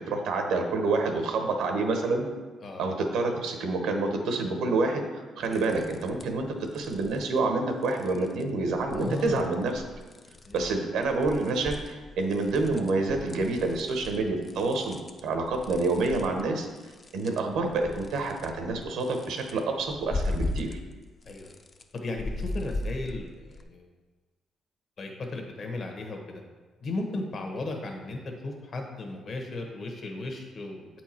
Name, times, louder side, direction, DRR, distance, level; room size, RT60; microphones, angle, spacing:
voice 1, 0.0-2.2 2.8-5.0 5.4-6.5 6.7-9.8 10.5-16.7 17.1-20.7, right 3 dB, 85° right, 4 dB, 1.0 m, -28 dB
sound 1, 5.4-6.4 6.7-7.3 7.8-8.4 8.8-10.7 11.0-20.9 21.2-23.6, left 2 dB, 35° left, 0.5 m, -38 dB
voice 2, 8.9-9.5 10.4-10.6 21.2-21.5 21.9-23.9 25.0-26.4 26.8-30.9, left 2 dB, 50° left, 2 dB, 1.2 m, -35 dB
8.2 x 4.6 x 4.4 m, 1.3 s
cardioid pair, 90°, 0 cm